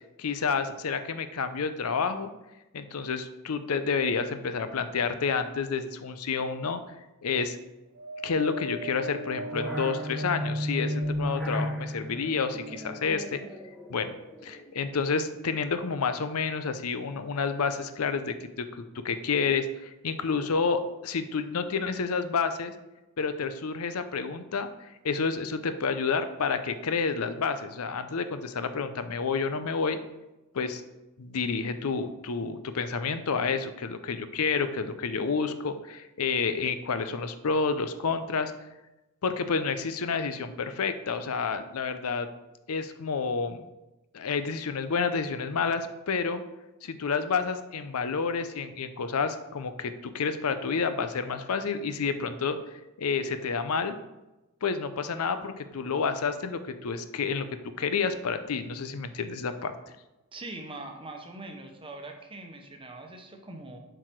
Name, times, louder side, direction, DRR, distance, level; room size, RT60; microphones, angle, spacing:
voice 1, 0.2-2.3 2.7-6.8 7.2-7.6 8.2-13.4 13.9-14.2 14.4-22.7 23.2-30.0 30.5-30.8 31.2-38.5 39.2-42.3 42.7-43.6 44.1-46.4 46.8-53.9 54.6-57.5 57.8-59.7, left 5 dB, 85° left, 10 dB, 0.6 m, -29 dB
Wind, 7.9-11.5 12.1-13.1 13.9-14.0, right 2 dB, 55° right, 0.6 m, -40 dB
sound 1, 8.5-14.9, equal, 5° left, 1.0 m, -34 dB
voice 2, 60.3-63.8, right 2 dB, 25° right, 4 dB, 0.9 m, -42 dB
7.7 x 4.7 x 4.6 m, 1.0 s
head